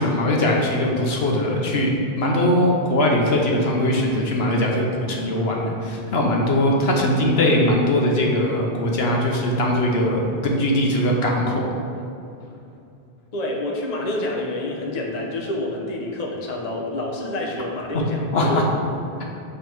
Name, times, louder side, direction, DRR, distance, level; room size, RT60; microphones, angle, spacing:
voice 1, 0.0-11.7 18.3-18.6, left 1 dB, 70° left, -1 dB, 1.1 m, -20 dB
voice 2, 13.3-18.6, left 1 dB, 40° left, -1 dB, 0.8 m, -28 dB
7.3 x 3.8 x 4.6 m, 2.7 s
omnidirectional pair, 1.1 m